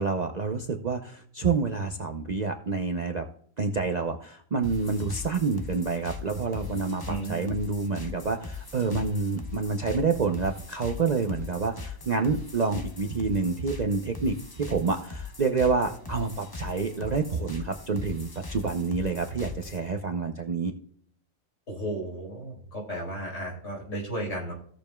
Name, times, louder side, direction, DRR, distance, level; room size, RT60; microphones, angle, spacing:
voice 1, 0.0-3.2 3.6-20.7, right 4 dB, 45° right, 4 dB, 0.6 m, -28 dB
sound 1, 4.6-19.9, left 4 dB, 20° left, 0.7 m, -40 dB
voice 2, 7.1-7.4 21.7-24.5, right 1 dB, 60° left, -2 dB, 4.9 m, -34 dB
17.0 x 6.9 x 2.3 m, 0.63 s
omnidirectional pair, 1.4 m